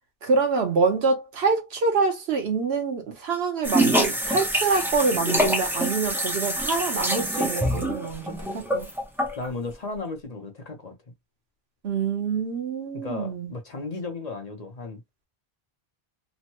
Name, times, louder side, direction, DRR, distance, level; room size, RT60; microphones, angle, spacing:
voice 1, 0.2-8.9 11.8-13.5, right 4 dB, 85° right, 1.2 m, -26 dB
sound 1, 3.6-9.5, equal, 5° right, 0.5 m, -25 dB
voice 2, 9.4-10.9 12.9-15.0, left 3 dB, 45° left, 0.8 m, -35 dB
3.0 x 2.1 x 3.0 m
omnidirectional pair, 1.0 m